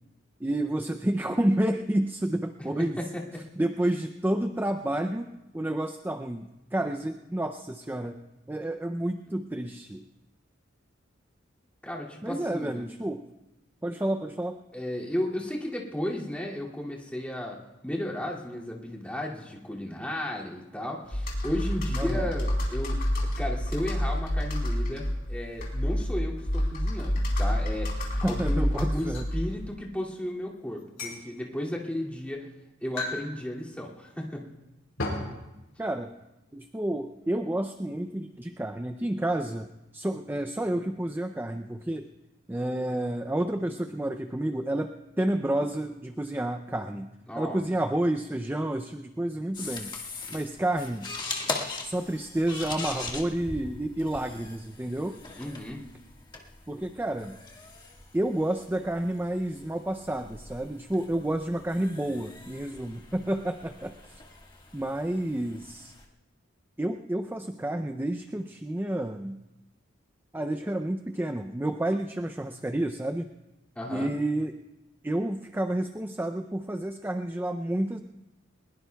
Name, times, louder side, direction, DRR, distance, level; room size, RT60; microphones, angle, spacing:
voice 1, 0.4-3.0 3.6-8.2 8.5-10.0 12.2-13.3 13.8-14.6 21.9-22.3 28.2-29.3 35.8-36.1 36.5-42.1 42.5-47.1 47.4-49.9 50.3-51.1 51.8-55.2 56.7-57.4 58.1-64.2 64.7-65.9 66.8-69.4 70.3-73.3 73.9-74.6 75.0-78.0, right 1 dB, 10° right, 7 dB, 0.5 m, -30 dB
voice 2, 11.8-12.9 14.7-23.0 23.4-32.5 32.8-34.5 47.3-47.6 55.4-55.9 73.8-74.1, left 1 dB, 5° left, -4 dB, 2.5 m, -34 dB
Computer keyboard, 21.1-29.7, equal, 50° left, 4.2 m, -28 dB
sound 1, 28.9-29.3 30.8-31.2 32.0-32.1 32.9-33.2 33.5-33.6 35.0-35.3, left 2 dB, 70° left, 4.9 m, -33 dB
sound 2, 49.5-66.1, left 3 dB, 25° left, 1.7 m, -41 dB
21.5 x 21.0 x 2.3 m, 0.99 s
head